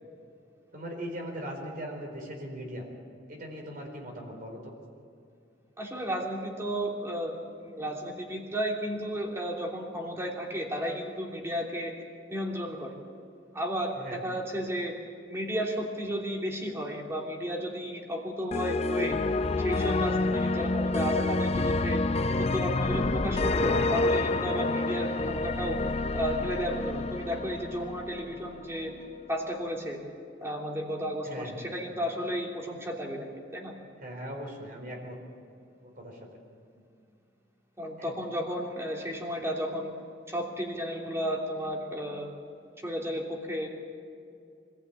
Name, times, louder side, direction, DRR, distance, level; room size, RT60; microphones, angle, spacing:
voice 1, 0.7-2.8 3.3-4.7 13.9-14.2 24.9-25.0 27.8-27.9 31.2-31.7 34.0-35.2 35.8-36.3 38.0-38.1, equal, 50° right, 1 dB, 4.4 m, -40 dB
voice 2, 5.8-11.9 12.3-13.0 13.5-14.9 15.3-19.2 19.6-22.0 22.4-25.8 26.1-28.9 29.3-30.0 30.4-33.7 37.8-39.9 40.3-42.3 42.8-43.7, equal, 15° right, -1 dB, 3.0 m, -33 dB
sound 1, 18.5-28.6, left 2 dB, 35° left, 0.5 m, -28 dB
25.5 x 15.5 x 8.5 m, 2.5 s
head